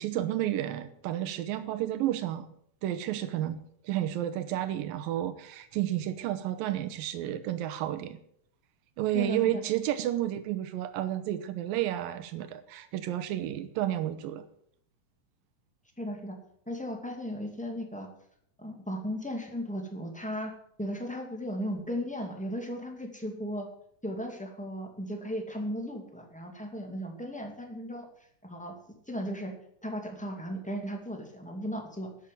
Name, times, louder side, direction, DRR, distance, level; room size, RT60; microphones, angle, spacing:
voice 1, 0.0-2.5 2.8-3.6 3.8-8.2 9.0-14.5, right 12 dB, 90° right, 11 dB, 2.6 m, -31 dB
voice 2, 9.1-9.6 16.0-16.4 16.6-18.1 18.6-20.5 20.8-23.7 24.0-28.0 28.4-28.7 29.1-29.5 29.8-32.1, equal, 5° left, 2 dB, 1.5 m, -36 dB
11.5 x 7.5 x 9.2 m, 0.68 s
omnidirectional pair, 4.0 m